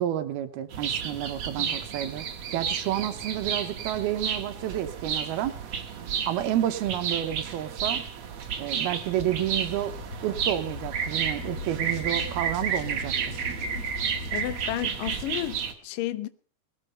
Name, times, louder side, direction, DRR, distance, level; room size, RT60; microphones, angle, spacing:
voice 1, 0.0-2.3 2.5-5.5 6.3-8.0 8.6-9.9 10.2-13.1, right 12 dB, 75° right, 2.8 m, -30 dB
sound 1, 0.7-15.7, right 7 dB, 50° right, 2.4 m, -32 dB
sound 2, 9.1-14.8, left 4 dB, 40° left, 2.0 m, -40 dB
voice 2, 14.3-16.3, left 15 dB, 70° left, 2.2 m, -32 dB
19.0 x 12.5 x 5.2 m
omnidirectional pair, 4.7 m